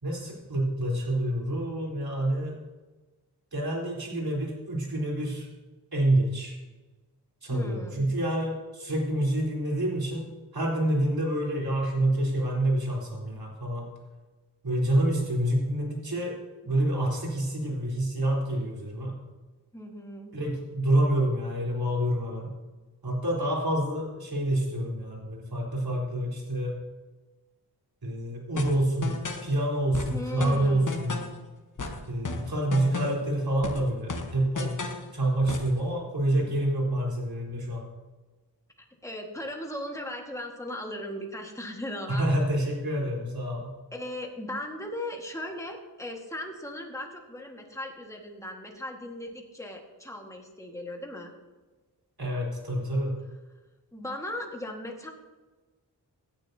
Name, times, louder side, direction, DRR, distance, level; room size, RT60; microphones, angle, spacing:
voice 1, 0.0-2.5 3.5-5.5 5.9-6.6 7.4-10.3 10.5-13.8 14.6-16.3 16.6-19.1 20.3-22.5 23.0-26.8 28.0-29.1 29.4-31.2 32.1-34.7 35.1-37.8 42.1-43.7 52.2-53.2, right 1 dB, 60° right, -3 dB, 3.7 m, -27 dB
voice 2, 7.5-8.0 19.7-20.3 30.1-30.9 39.0-42.3 43.9-51.3 53.9-55.1, left 1 dB, 5° left, 1 dB, 1.5 m, -37 dB
sound 1, 28.6-29.5 29.9-31.4 31.8-33.3 33.6-35.1 35.5-35.8, left 3 dB, 50° left, 1.1 m, -34 dB
16.0 x 9.9 x 2.7 m, 1.2 s
wide cardioid pair, 90°, 40 cm